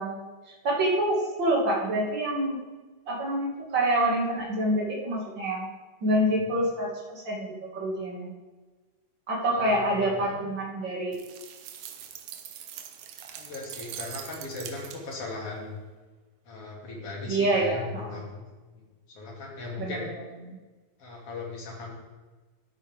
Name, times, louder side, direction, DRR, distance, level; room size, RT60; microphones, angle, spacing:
voice 1, 0.0-2.6 3.1-5.7 6.0-8.3 9.3-11.2 17.3-18.2 19.8-20.0 20.5-20.6, right 1 dB, 40° right, -3 dB, 2.8 m, -27 dB
voice 2, 9.5-10.5 13.3-15.7 16.4-18.4 18.7-20.1 21.0-21.9, left 2 dB, 55° left, -3 dB, 3.3 m, -38 dB
sound 1, 11.1-15.3, right 9 dB, 90° right, 2.2 m, -42 dB
12.5 x 9.0 x 3.6 m, 1.3 s
omnidirectional pair, 3.3 m